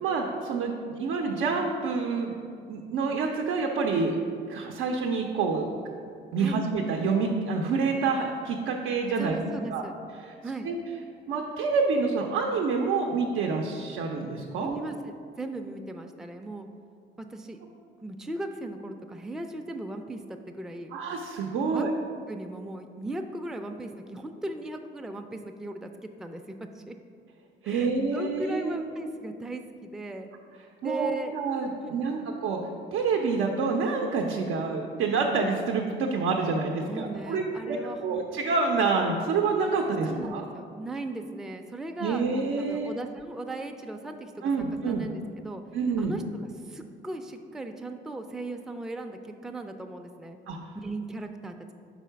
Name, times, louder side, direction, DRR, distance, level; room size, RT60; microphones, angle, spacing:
voice 1, 0.0-2.3 2.7-4.1 4.5-5.7 6.3-9.4 9.7-9.8 10.2-10.3 10.6-10.8 11.3-14.7 20.9-21.9 27.6-28.9 30.8-32.6 32.9-40.4 42.0-42.9 44.4-45.1 45.7-46.2 50.5-50.6, right 4 dB, 90° right, 1 dB, 0.5 m, -27 dB
voice 2, 9.2-9.9 10.4-10.7 14.6-16.7 17.2-17.6 18.0-20.2 20.5-20.9 21.5-21.8 22.3-26.4 26.7-27.0 27.6-30.3 30.8-31.4 31.8-32.2 36.9-38.2 40.1-44.4 44.9-45.6 46.0-46.2 46.7-50.4 50.7-51.7, right 2 dB, 5° right, 5 dB, 0.3 m, -37 dB
4.5 x 4.1 x 5.6 m, 2.3 s
cardioid pair, 90°, 20 cm